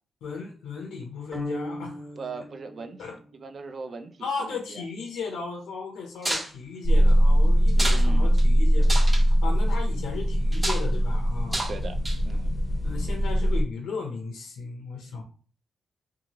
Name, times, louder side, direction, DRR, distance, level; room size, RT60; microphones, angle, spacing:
voice 1, 0.2-2.1 2.4-2.5 3.0-3.1 4.2-11.7 12.8-15.2, left 5 dB, 85° left, 1 dB, 0.6 m, -36 dB
sound 1, 1.3-3.6, equal, ahead, 1.3 m, -38 dB
voice 2, 2.2-4.3 4.7-4.9 7.8-8.3 11.7-12.0 12.2-12.5, right 4 dB, 60° right, 7 dB, 0.4 m, -39 dB
sound 2, 6.2-6.5 7.7-8.0 8.4-8.5 8.8-9.2 10.5-10.8 11.5-11.7 12.0-12.4, right 1 dB, 25° right, 0.8 m, -29 dB
sound 3, 6.8-13.6, equal, 40° left, 0.7 m, -21 dB
2.8 x 2.3 x 2.9 m, 0.40 s
supercardioid pair, 55°, 0 cm